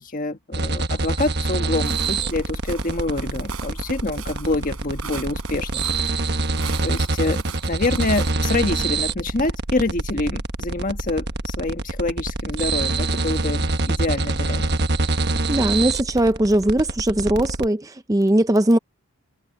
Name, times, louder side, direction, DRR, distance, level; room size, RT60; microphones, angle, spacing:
voice 1, 0.0-6.3 6.8-14.7, left 2 dB, 35° left, 1.5 m, -26 dB
sound 1, 0.5-17.7, right 2 dB, 50° right, 1.3 m, -25 dB
Walk footsteps, 1.8-8.3, right 7 dB, 80° right, 6.7 m, -40 dB
voice 2, 15.5-18.8, right 1 dB, 15° right, 0.6 m, -19 dB
head